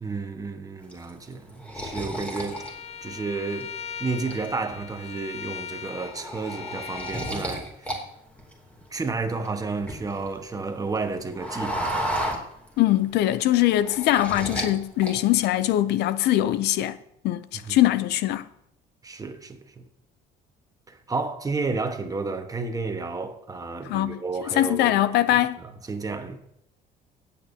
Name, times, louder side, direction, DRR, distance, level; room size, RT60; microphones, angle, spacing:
voice 1, 0.0-2.6 3.0-3.7 4.0-7.9 8.9-11.9 17.5-17.8 19.0-19.8 20.9-25.0 25.3-25.4 25.9-26.4, right 4 dB, 20° right, 1.3 m, -31 dB
sound 1, 0.9-3.6 4.1-4.8 5.2-5.4 5.7-8.0 8.3-10.3 10.7-13.0 13.3-14.7 15.0-15.6, equal, 10° left, 2.8 m, -33 dB
Bowed string instrument, 2.5-7.4, left 7 dB, 40° left, 0.7 m, -39 dB
voice 2, 12.8-17.0 17.2-18.5 23.8-25.6, left 14 dB, 80° left, 0.5 m, -22 dB
17.5 x 8.6 x 2.8 m
cardioid pair, 110°, 17 cm